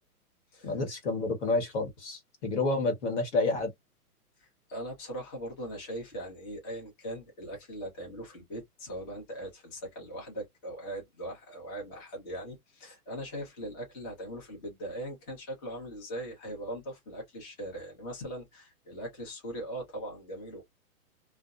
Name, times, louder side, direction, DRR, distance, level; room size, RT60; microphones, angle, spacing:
voice 1, 0.6-3.7, left 3 dB, 50° left, 1.2 m, -29 dB
voice 2, 4.4-20.7, right 1 dB, 20° left, 1.0 m, -40 dB
2.4 x 2.2 x 2.4 m
hypercardioid pair, 150°, 46 cm